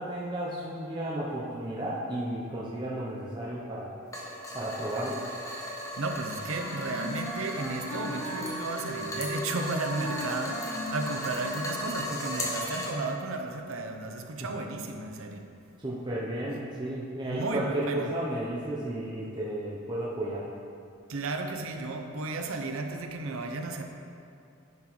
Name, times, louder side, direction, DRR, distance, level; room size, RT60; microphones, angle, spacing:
voice 1, 0.0-3.9 4.5-5.2 14.4-14.5 15.8-20.5, right 1 dB, 20° right, -6 dB, 0.6 m, -33 dB
sound 1, 4.1-12.9, equal, 15° left, 0.8 m, -37 dB
voice 2, 6.0-15.4 17.2-18.1 21.1-23.8, right 3 dB, 80° right, 5 dB, 0.6 m, -34 dB
Wind instrument woodwind instrument, 6.4-11.7, left 1 dB, 40° left, 1.5 m, -38 dB
10.5 x 6.0 x 3.1 m, 2.6 s
head